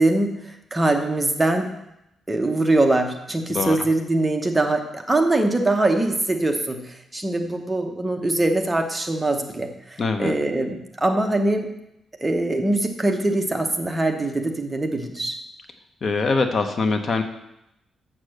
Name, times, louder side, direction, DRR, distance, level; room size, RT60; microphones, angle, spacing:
voice 1, 0.0-1.7 2.3-11.7 12.2-15.4, right 2 dB, 10° right, 3 dB, 0.8 m, -22 dB
voice 2, 10.0-10.3 16.0-17.2, left 4 dB, 35° left, 7 dB, 0.7 m, -23 dB
7.3 x 6.6 x 6.4 m, 0.84 s
wide cardioid pair, 165°, 0 cm